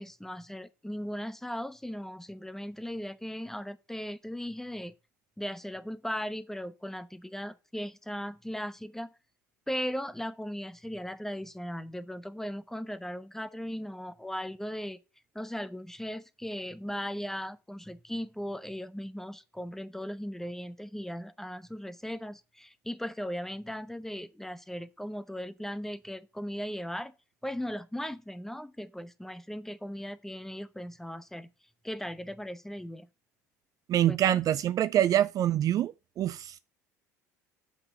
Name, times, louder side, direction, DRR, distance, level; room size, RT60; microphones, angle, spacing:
voice 1, 0.0-4.9 5.4-9.1 9.7-15.0 15.3-27.1 27.4-31.5 31.8-33.1 34.1-34.4, equal, 5° left, 0.9 m, -38 dB
voice 2, 33.9-36.6, right 11 dB, 45° right, 0.4 m, -25 dB
7.8 x 6.0 x 6.5 m
figure-of-eight pair, 65°, 9 cm